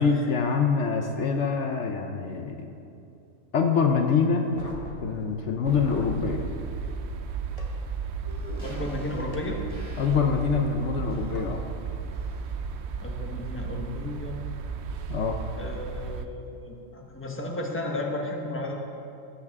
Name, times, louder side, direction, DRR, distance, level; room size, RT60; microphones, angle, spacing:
voice 1, 0.0-2.7 3.5-4.5 5.0-6.5 10.0-11.6 15.1-15.4, left 5 dB, 65° left, 4 dB, 1.0 m, -25 dB
sound 1, 4.4-6.2 7.6-7.7 9.3-9.4 11.3-11.4 12.8-13.0, left 1 dB, 25° left, 1.4 m, -41 dB
sound 2, 5.6-16.3, right 5 dB, 65° right, 0.8 m, -34 dB
sound 3, 8.3-12.7 13.0-13.1, equal, 20° right, 1.5 m, -44 dB
voice 2, 8.6-9.6 13.0-14.4 15.6-18.7, left 2 dB, 10° left, 0 dB, 1.1 m, -34 dB
18.5 x 8.0 x 3.6 m, 2.6 s
omnidirectional pair, 1.4 m